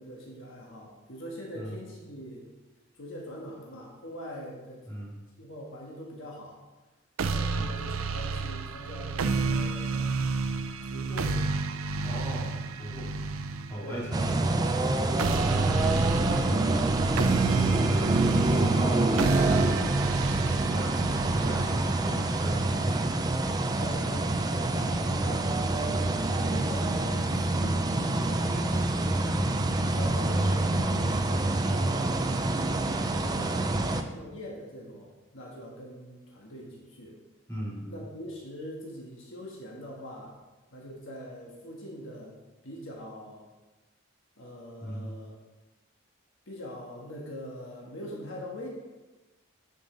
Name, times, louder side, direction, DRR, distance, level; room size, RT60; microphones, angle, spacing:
voice 1, 0.0-2.4 3.0-4.8 5.4-6.6 7.3-10.1 10.8-11.4 13.8-14.0 15.3-16.9 23.8-37.1 37.9-40.4 40.7-42.4 42.6-43.4 44.4-45.4 46.5-48.7, equal, 65° left, -3 dB, 1.5 m, -43 dB
sound 1, 7.2-23.2, right 4 dB, 90° right, 0.5 m, -31 dB
voice 2, 12.0-13.1 13.7-14.6 15.0-15.3 16.4-16.8 17.8-19.7 20.2-23.1 33.6-34.0 37.5-38.0 44.8-45.1, right 1 dB, 15° left, -7 dB, 2.7 m, -37 dB
sound 2, 14.1-34.0, right 2 dB, 20° right, 0.5 m, -26 dB
9.5 x 5.4 x 3.9 m, 1.1 s
head